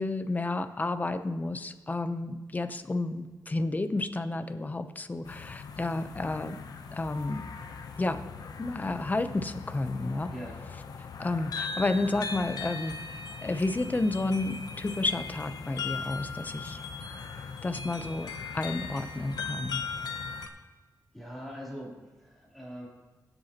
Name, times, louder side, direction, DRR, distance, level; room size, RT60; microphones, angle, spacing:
voice 1, 0.0-6.6 6.9-7.5 8.0-8.2 8.6-10.3 11.2-16.8 17.6-18.3 18.5-19.9, left 2 dB, 25° left, 9 dB, 0.7 m, -31 dB
dresden glockenspiel, 5.2-20.5, left 5 dB, 80° left, 0.7 m, -39 dB
voice 2, 21.1-22.9, equal, ahead, -5 dB, 3.2 m, -42 dB
21.5 x 8.0 x 2.9 m, 1.3 s
wide cardioid pair, 110°, 7 cm